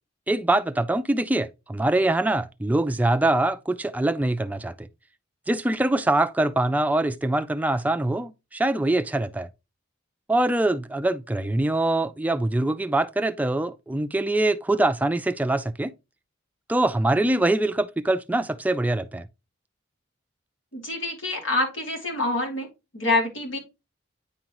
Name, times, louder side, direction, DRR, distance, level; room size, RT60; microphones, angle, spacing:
voice 1, 0.3-4.9 5.5-9.5 10.3-15.9 16.7-19.3, right 2 dB, 10° right, 0.3 m, -24 dB
voice 2, 20.7-22.7 22.9-23.6, left 2 dB, 85° left, 2.9 m, -26 dB
9.6 x 3.7 x 3.0 m
head